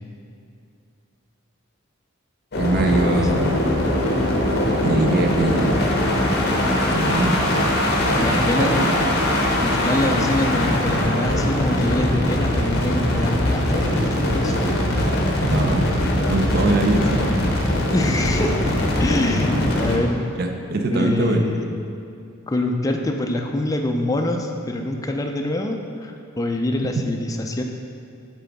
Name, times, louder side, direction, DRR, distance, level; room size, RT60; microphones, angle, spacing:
sound 1, 2.5-20.0, left 1 dB, 50° left, 0.7 m, -21 dB
voice 1, 2.6-3.6 4.8-5.9 6.9-7.8 8.1-9.1 15.5-15.9 16.3-17.2 20.4-21.4, right 2 dB, 50° right, 4 dB, 0.4 m, -23 dB
voice 2, 8.2-9.2 9.6-14.8 17.9-20.2 20.9-21.7 22.5-27.6, left 1 dB, 15° left, 3 dB, 0.3 m, -25 dB
7.7 x 3.8 x 3.4 m, 2.5 s
head